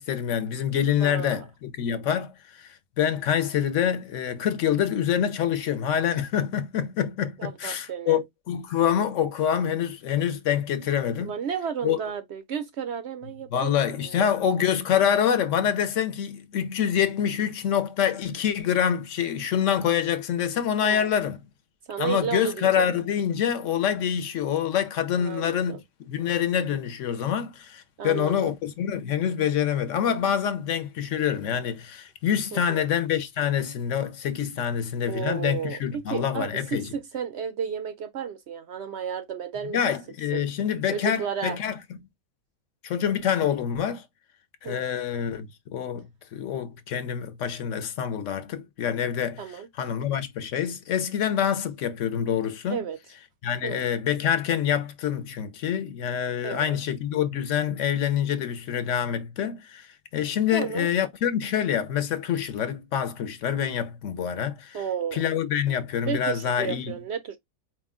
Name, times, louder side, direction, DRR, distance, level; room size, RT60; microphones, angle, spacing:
voice 1, 0.0-11.3 11.8-12.0 13.5-21.4 22.0-36.9 39.7-41.8 42.8-44.1 44.6-52.9 53.4-64.8 65.1-67.0, left 9 dB, 60° left, 0.9 m, -26 dB
voice 2, 1.0-1.4 7.4-8.2 11.2-13.7 14.0-14.2 20.8-21.1 21.9-22.9 25.2-25.8 28.0-28.5 32.5-32.9 35.1-39.9 40.3-40.4 40.9-41.6 44.6-44.8 49.4-49.7 52.7-53.0 53.6-53.8 56.4-56.8 60.5-60.9 64.7-65.2 66.1-67.4, right 7 dB, 70° right, 0.6 m, -32 dB
4.7 x 2.2 x 3.6 m
omnidirectional pair, 1.6 m